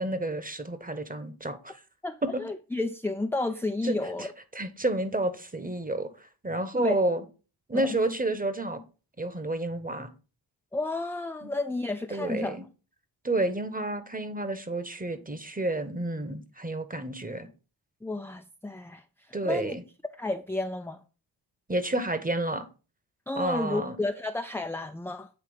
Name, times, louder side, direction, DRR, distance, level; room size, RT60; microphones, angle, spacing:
voice 1, 0.0-1.8 3.8-4.3 4.5-6.1 6.4-7.2 7.7-8.8 9.2-10.1 11.4-11.5 12.1-12.6 13.2-17.5 19.3-19.8 21.7-22.6 23.4-24.0, right 2 dB, 15° right, 1.2 m, -30 dB
voice 2, 2.0-4.3 6.7-7.0 7.7-8.0 10.7-12.6 18.0-19.0 19.4-19.8 20.2-21.0 23.3-25.3, left 2 dB, 5° left, 0.5 m, -31 dB
8.4 x 3.3 x 5.0 m
supercardioid pair, 45°, 49 cm